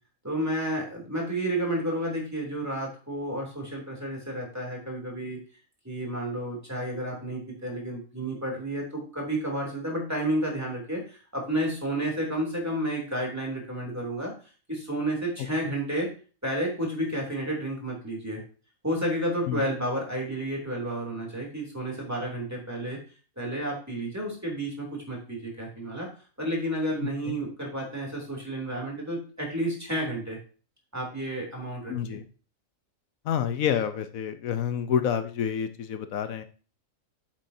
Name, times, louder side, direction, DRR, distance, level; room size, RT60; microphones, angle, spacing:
voice 1, 0.2-5.4 5.8-14.3 14.7-16.1 16.4-18.4 18.8-23.0 23.4-26.1 26.4-30.4 30.9-32.2, right 1 dB, 10° right, -1 dB, 2.9 m, -31 dB
voice 2, 31.9-32.3 33.2-36.4, left 8 dB, 80° left, 10 dB, 1.2 m, -28 dB
8.7 x 7.7 x 2.7 m, 0.37 s
omnidirectional pair, 1.4 m